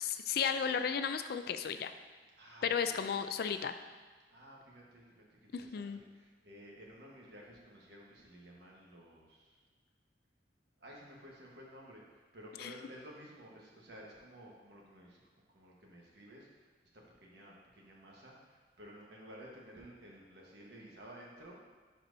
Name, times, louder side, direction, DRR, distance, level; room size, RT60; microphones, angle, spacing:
voice 1, 0.0-1.9 2.6-3.7 5.5-6.0 12.6-12.7, left 7 dB, 55° left, 9 dB, 0.3 m, -34 dB
voice 2, 2.4-3.0 4.3-9.7 10.8-15.2 15.5-21.6, equal, 65° right, -3 dB, 1.3 m, -54 dB
11.0 x 4.3 x 2.7 m, 1.4 s
head